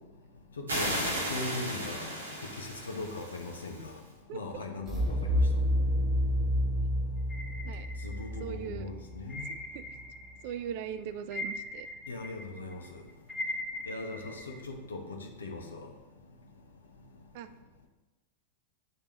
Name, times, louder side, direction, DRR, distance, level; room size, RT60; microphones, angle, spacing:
voice 1, 0.6-2.1 2.4-4.0 4.3-5.4 8.0-9.4 12.1-13.0 13.9-15.9, left 3 dB, 70° left, 2 dB, 0.8 m, -39 dB
sound 1, 0.7-4.0, right 1 dB, 70° right, 1.0 m, -35 dB
sound 2, 4.9-9.7, equal, 15° right, 0.9 m, -29 dB
sound 3, 7.3-8.6 9.3-10.6 10.9-14.6, left 2 dB, 5° left, 1.1 m, -41 dB
voice 2, 8.4-8.9 9.7-9.8 10.4-11.9 17.3-17.5, right 9 dB, 50° right, 12 dB, 0.3 m, -39 dB
9.1 x 3.4 x 3.0 m, 1.1 s
figure-of-eight pair, 90°, 0 cm